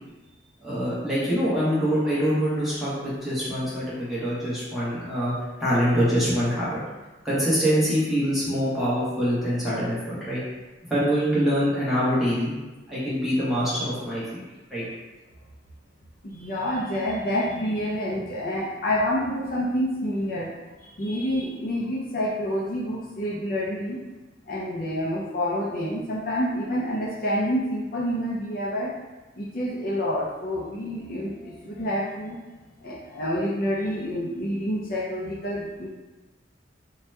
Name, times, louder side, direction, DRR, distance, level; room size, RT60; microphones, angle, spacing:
voice 1, 0.6-5.3 5.6-6.8 7.2-10.4 10.9-12.5 12.9-14.4 14.7-14.8, equal, ahead, -11 dB, 0.9 m, -24 dB
voice 2, 16.2-20.5 20.8-24.0 24.5-28.9 29.4-32.4 32.8-35.9, equal, 50° left, -4 dB, 0.4 m, -28 dB
2.8 x 2.2 x 3.2 m, 1.2 s
head